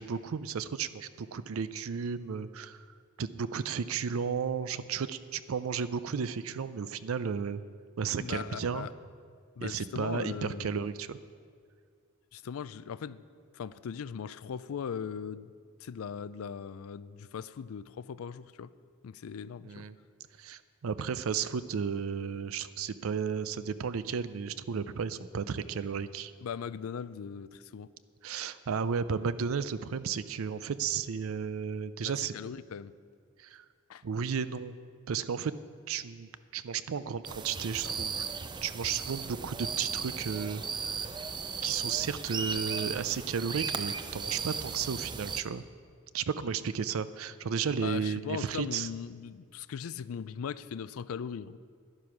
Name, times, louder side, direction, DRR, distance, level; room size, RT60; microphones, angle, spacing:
voice 1, 0.0-2.8 3.2-7.6 8.0-8.9 9.6-11.2 19.6-20.0 20.4-26.3 28.2-32.3 33.4-33.6 34.0-34.7 35.1-35.5 35.9-38.3 38.6-41.1 41.6-45.6 46.1-48.9, right 6 dB, 80° right, 14 dB, 0.5 m, -33 dB
voice 2, 8.2-8.9 9.6-10.8 12.3-13.2 13.5-15.5 15.8-18.7 19.0-19.9 26.4-27.9 32.3-32.9 33.9-34.0 47.8-51.6, left 7 dB, 80° left, 16 dB, 0.4 m, -39 dB
sound 1, 37.2-45.4, right 5 dB, 20° right, 0.4 m, -36 dB
11.0 x 9.8 x 5.8 m, 2.1 s
head